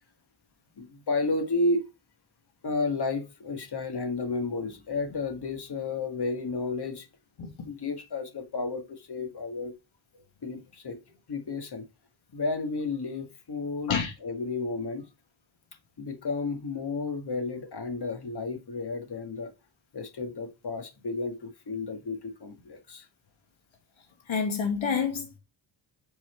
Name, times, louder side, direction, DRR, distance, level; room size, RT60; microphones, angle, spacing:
voice 1, 0.8-1.8 2.6-7.1 7.7-9.7 10.4-11.0 11.3-11.9 12.3-15.1 16.0-19.5 19.9-23.1, left 3 dB, 55° left, 1.9 m, -32 dB
voice 2, 24.3-25.4, left 6 dB, 85° left, 2.0 m, -28 dB
8.1 x 4.7 x 4.4 m
wide cardioid pair, 95°, 46 cm